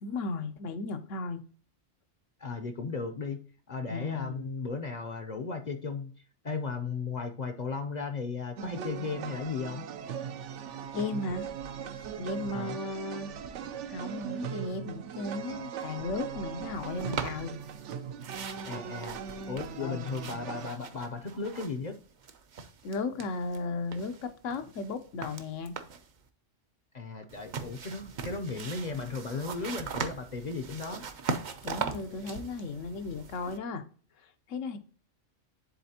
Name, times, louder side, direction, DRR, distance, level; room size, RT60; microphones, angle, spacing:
voice 1, 0.0-1.4 3.9-4.5 10.9-11.5 11.9-13.3 13.9-17.6 19.8-20.0 22.8-25.7 31.6-33.8 34.5-34.8, left 3 dB, 80° left, 1.1 m, -35 dB
voice 2, 2.4-3.4 3.7-6.1 6.4-9.8 12.5-12.8 18.6-19.2 19.5-22.0 26.9-31.0, left 4 dB, 45° left, 0.6 m, -35 dB
sound 1, 8.6-20.7, right 7 dB, 75° right, 0.9 m, -39 dB
sound 2, 17.0-17.9 18.2-22.0 22.2-23.6 23.9-26.1 27.3-33.6, right 5 dB, 50° right, 0.6 m, -40 dB
10.0 x 4.2 x 2.8 m
omnidirectional pair, 1.3 m